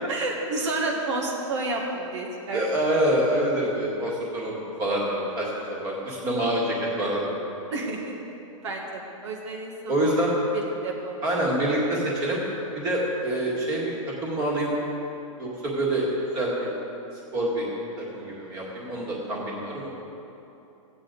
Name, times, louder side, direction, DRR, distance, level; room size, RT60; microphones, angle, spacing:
voice 1, 0.1-2.6 7.7-8.2 8.6-10.1 10.5-11.2, right 2 dB, 55° right, 0 dB, 1.4 m, -30 dB
voice 2, 2.5-5.5 5.8-7.4 9.9-10.3 11.2-12.4 12.8-14.7 15.4-16.1 16.3-16.7 17.3-17.7 18.0-19.9, right 1 dB, 20° right, -4 dB, 2.0 m, -26 dB
15.5 x 8.3 x 3.9 m, 2.9 s
hypercardioid pair, 170°, 18 cm